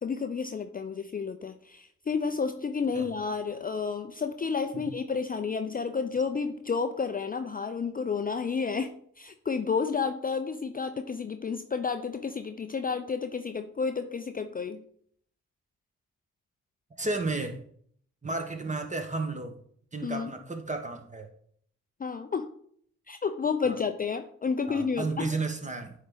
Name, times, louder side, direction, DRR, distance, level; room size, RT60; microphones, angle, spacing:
voice 1, 0.0-14.8 20.0-20.3 22.0-22.5 23.1-25.3, left 5 dB, 25° left, 8 dB, 0.5 m, -31 dB
voice 2, 17.0-17.6 18.2-19.5 19.9-21.3 23.6-23.8 24.7-25.9, right 3 dB, 20° right, 5 dB, 1.3 m, -33 dB
9.2 x 3.1 x 3.9 m, 0.63 s
hypercardioid pair, 40°, 34 cm